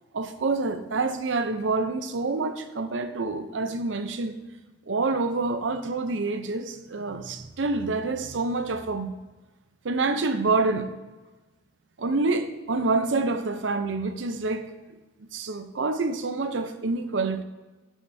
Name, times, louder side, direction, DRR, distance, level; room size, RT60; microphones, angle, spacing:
voice 1, 0.1-4.3 4.9-9.1 9.8-10.9 12.0-14.7 15.3-17.4, right 3 dB, 85° right, 9 dB, 0.7 m, -27 dB
9.1 x 7.2 x 2.7 m, 1.2 s
head